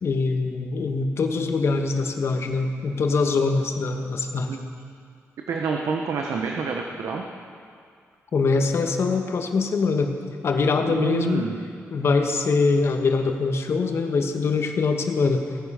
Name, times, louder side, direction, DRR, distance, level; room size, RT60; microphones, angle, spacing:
voice 1, 0.0-4.6 8.3-10.1 10.4-11.5 11.9-15.4, left 4 dB, 55° left, 4 dB, 1.3 m, -23 dB
voice 2, 5.5-7.2 10.9-11.5, right 5 dB, 75° right, 1 dB, 1.0 m, -27 dB
17.0 x 9.8 x 5.7 m, 2.2 s
cardioid pair, 105°, 5 cm